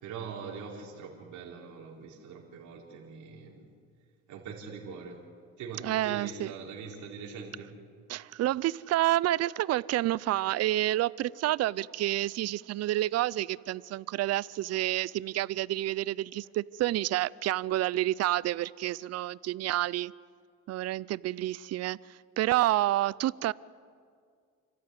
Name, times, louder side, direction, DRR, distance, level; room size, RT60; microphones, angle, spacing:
voice 1, 0.0-3.6 4.3-5.2 5.6-7.7, right 5 dB, 75° right, 5.0 m, -42 dB
voice 2, 5.8-6.5 8.1-20.1 20.7-22.0 22.4-23.5, right 15 dB, 55° right, 0.5 m, -29 dB
30.0 x 14.0 x 9.7 m
cardioid pair, 125°, 29 cm